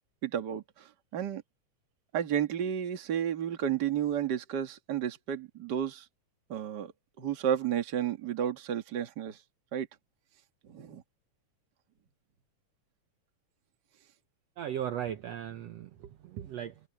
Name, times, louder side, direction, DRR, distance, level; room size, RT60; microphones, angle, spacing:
voice 1, 0.2-1.4 2.1-6.1 6.5-6.9 7.2-9.4 9.7-9.9 10.7-11.0, right 9 dB, 40° right, 1.7 m, -32 dB
voice 2, 14.6-16.8, right 10 dB, 65° right, 1.8 m, -37 dB
omnidirectional pair, 3.7 m